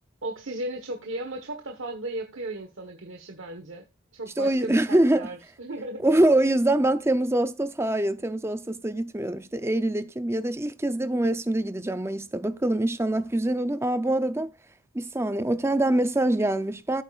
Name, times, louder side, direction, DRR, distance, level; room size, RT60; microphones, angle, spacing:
voice 1, 0.2-3.9 4.1-6.0, right 1 dB, 60° right, 1.3 m, -35 dB
voice 2, 4.4-5.3 6.0-14.5 14.9-17.0, right 1 dB, 10° right, 0.5 m, -24 dB
15.0 x 8.6 x 2.4 m
head